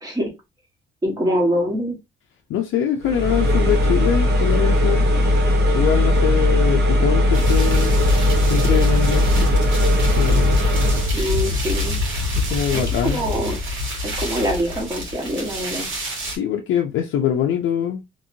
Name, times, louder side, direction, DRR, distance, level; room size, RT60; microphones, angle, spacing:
voice 1, 1.0-2.0 11.1-12.0 12.7-13.6 14.2-15.9, equal, 20° right, 1.3 m, -24 dB
voice 2, 2.5-5.0 5.7-8.0 8.5-9.5 10.0-10.6 12.3-13.2 16.3-18.0, left 9 dB, 80° left, 0.5 m, -23 dB
sound 1, 3.0-11.1, left 1 dB, 55° right, 0.9 m, -18 dB
sound 2, 7.3-16.4, left 2 dB, 80° right, 1.6 m, -25 dB
2.9 x 2.7 x 2.6 m
cardioid pair, 90°, 20 cm